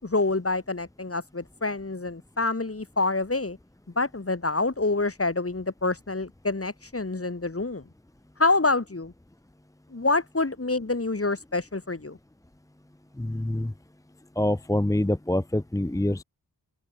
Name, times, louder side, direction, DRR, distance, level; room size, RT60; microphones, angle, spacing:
voice 1, 0.0-3.6 4.0-7.8 8.4-9.1 9.9-12.2, left 3 dB, 35° left, 5.4 m, -27 dB
voice 2, 13.2-13.7 14.4-16.2, left 1 dB, 10° left, 0.8 m, -25 dB
open air
wide cardioid pair, 95°, 42 cm